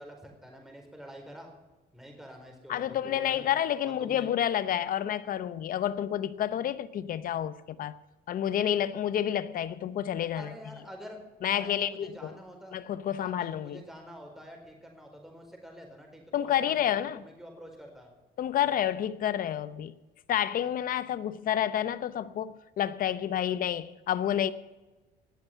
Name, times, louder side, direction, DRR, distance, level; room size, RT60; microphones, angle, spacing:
voice 1, 0.0-1.5 1.9-3.5 3.8-4.3 10.3-11.2 11.5-12.8 13.2-18.1, equal, ahead, 4.5 m, -47 dB
voice 2, 2.7-8.0 8.3-10.5 11.4-12.3 12.7-13.8 16.3-17.2 18.4-20.0 20.3-24.5, left 10 dB, 55° left, 0.8 m, -29 dB
18.5 x 7.0 x 9.2 m
cardioid pair, 110°, 17 cm